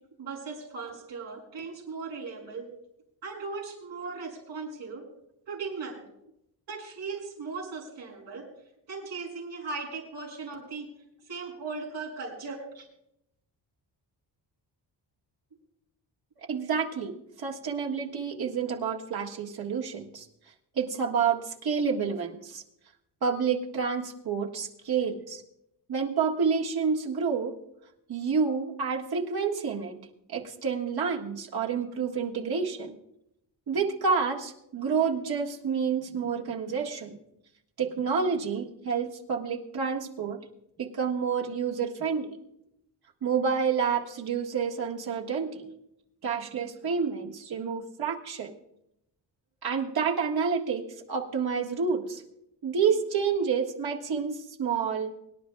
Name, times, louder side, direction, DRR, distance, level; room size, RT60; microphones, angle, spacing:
voice 1, 0.2-2.7 3.2-5.0 5.5-6.0 6.7-8.5 8.9-10.9 11.2-12.9, right 4 dB, 85° right, -1 dB, 6.2 m, -38 dB
voice 2, 16.5-17.1 17.4-20.3 20.7-22.6 23.2-25.4 25.9-27.5 28.1-30.0 30.3-33.0 33.7-37.2 37.8-40.4 40.8-42.3 43.2-45.6 46.2-48.5 49.6-52.2 52.6-55.1, right 6 dB, 55° right, 0 dB, 1.7 m, -29 dB
24.5 x 11.0 x 2.3 m, 0.80 s
wide cardioid pair, 150°, 43 cm